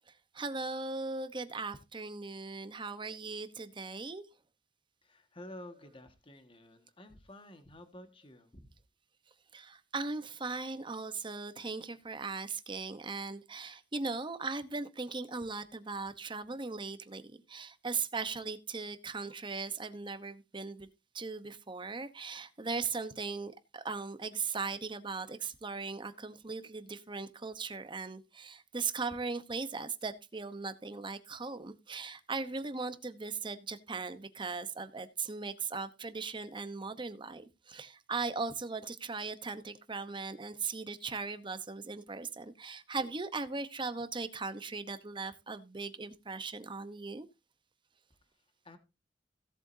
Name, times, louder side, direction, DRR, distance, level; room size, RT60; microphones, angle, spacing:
voice 1, 0.1-4.2 9.5-20.9 21.1-47.3, right 4 dB, 25° right, 0.9 m, -38 dB
voice 2, 5.0-8.8 48.1-48.8, left 1 dB, 30° left, 1.7 m, -52 dB
17.0 x 7.8 x 2.7 m
head